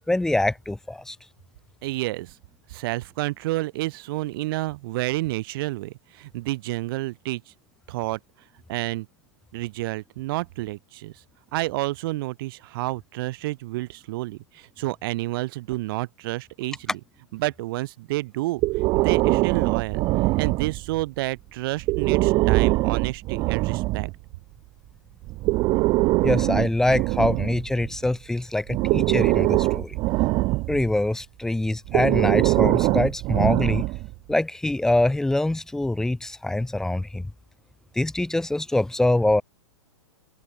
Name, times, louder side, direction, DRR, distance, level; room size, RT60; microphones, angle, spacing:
voice 1, 0.1-1.2 26.2-30.0 30.7-33.9 34.3-37.3 37.9-39.4, left 1 dB, 5° left, 1.8 m, -24 dB
voice 2, 1.8-2.3 2.7-7.4 7.9-8.2 8.7-9.1 9.5-11.1 11.5-17.0 17.3-18.6 18.9-24.1, right 19 dB, 45° right, 4.4 m, -29 dB
Breathing, 18.6-21.0 21.8-24.1 25.2-28.1 28.7-30.9 31.8-34.1, right 21 dB, 25° right, 0.9 m, -22 dB
open air
hypercardioid pair, 160°, 17 cm